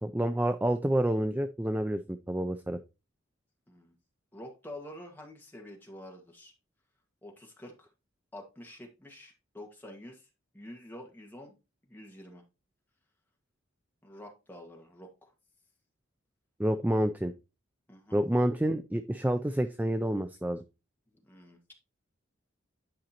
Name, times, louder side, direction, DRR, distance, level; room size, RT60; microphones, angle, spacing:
voice 1, 0.0-2.8 16.6-17.3 18.1-20.6, right 1 dB, 10° right, 9 dB, 0.3 m, -28 dB
voice 2, 4.3-6.5 7.2-7.9 8.3-10.3 10.5-11.6 11.9-12.4 14.0-15.3 17.9-18.2 21.2-21.6, left 1 dB, 10° left, 0 dB, 1.6 m, -48 dB
10.5 x 5.2 x 2.9 m, 0.27 s
head